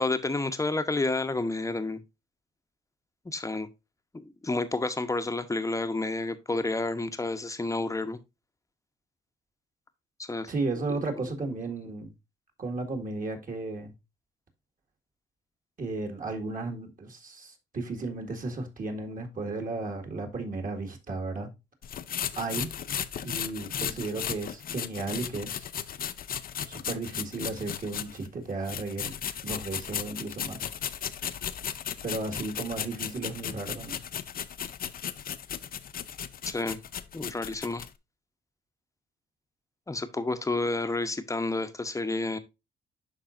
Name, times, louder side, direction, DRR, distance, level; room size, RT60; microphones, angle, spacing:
voice 1, 0.0-2.0 3.2-3.7 4.1-8.2 10.2-10.5 36.5-36.8 37.1-37.9 39.9-42.4, left 2 dB, 15° left, 0.9 m, -30 dB
voice 2, 10.5-12.1 12.6-13.9 15.8-21.5 22.4-22.7 23.2-25.7 26.7-29.2 29.4-30.6 32.0-34.0, right 3 dB, 45° right, 1.9 m, -34 dB
sound 1, 21.8-28.3 28.6-37.9, left 9 dB, 45° left, 0.5 m, -36 dB
11.5 x 4.0 x 2.5 m
cardioid pair, 90°, 20 cm